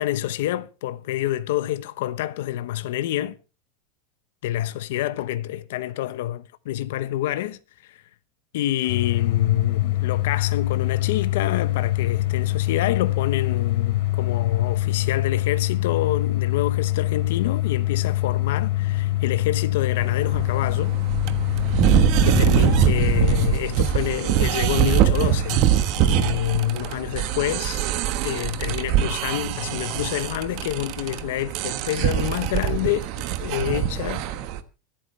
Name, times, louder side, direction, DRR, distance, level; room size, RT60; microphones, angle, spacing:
voice 1, 0.0-3.4 4.4-8.0 8.5-20.9 21.5-21.6 22.2-25.6 26.0-27.8 28.2-34.5, left 13 dB, 70° left, 1.0 m, -27 dB
sound 1, 8.9-23.6, left 17 dB, 45° left, 3.7 m, -24 dB
sound 2, 20.0-34.6, right 10 dB, 40° right, 1.3 m, -23 dB
26.0 x 8.9 x 3.3 m
supercardioid pair, 175°, 0 cm